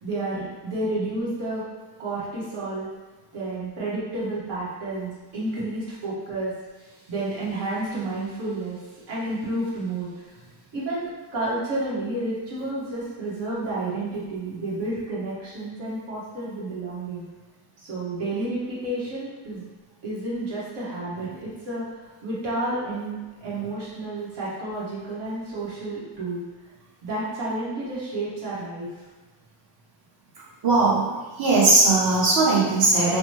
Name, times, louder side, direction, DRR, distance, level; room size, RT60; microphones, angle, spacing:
voice 1, 0.0-1.6 2.0-2.9 3.3-8.8 9.1-10.3 10.7-17.2 17.8-19.6 20.0-26.4 27.0-28.9, right 2 dB, 70° right, -9 dB, 1.3 m, -30 dB
voice 2, 30.6-31.1 31.4-33.2, right 3 dB, 50° right, -4 dB, 0.9 m, -19 dB
2.9 x 2.1 x 3.1 m, 1.3 s
cardioid pair, 120°, 49 cm